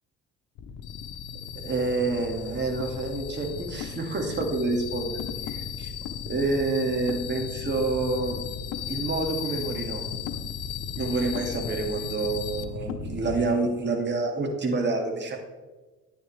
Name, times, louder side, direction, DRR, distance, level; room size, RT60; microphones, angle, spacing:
sound 1, 0.6-13.5, left 7 dB, 90° left, 0.9 m, -35 dB
voice 1, 1.6-5.9 6.3-8.4 8.9-10.0 11.0-15.4, right 3 dB, 35° right, 2 dB, 2.1 m, -28 dB
10.0 x 9.8 x 3.3 m, 1.2 s
cardioid pair, 90°, 30 cm